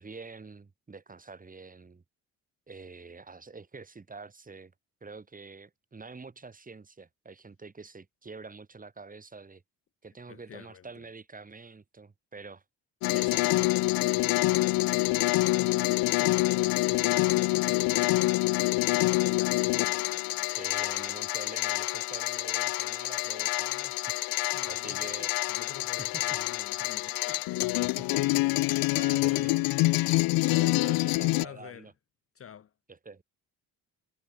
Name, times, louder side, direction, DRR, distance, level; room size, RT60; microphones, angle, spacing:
voice 1, 0.0-2.0 2.7-4.7 5.0-9.6 10.0-12.6 13.1-13.7 20.5-24.2 24.7-25.3 26.0-26.2 27.8-29.5 30.5-31.9 32.9-33.2, right 4 dB, 25° right, 4.8 m, -46 dB
voice 2, 10.3-11.1 15.6-19.6 24.4-27.7 28.6-29.6 30.0-31.9 32.3-32.7, left 9 dB, 40° left, 1.0 m, -47 dB
sound 1, 13.0-31.5, left 21 dB, 75° left, 0.5 m, -26 dB
cardioid pair, 105°, 36 cm